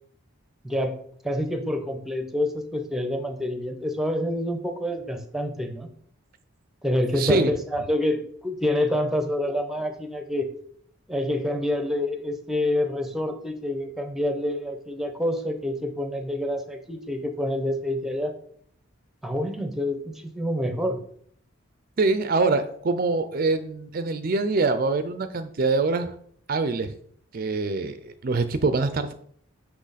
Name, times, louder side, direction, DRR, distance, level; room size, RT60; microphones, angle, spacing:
voice 1, 0.6-5.9 6.8-10.5 11.1-18.4 19.2-21.0, left 1 dB, ahead, 7 dB, 0.7 m, -27 dB
voice 2, 7.1-7.5 22.0-26.1 26.5-26.9 27.3-29.1, right 3 dB, 45° right, 10 dB, 0.4 m, -24 dB
6.2 x 5.7 x 4.1 m, 0.62 s
head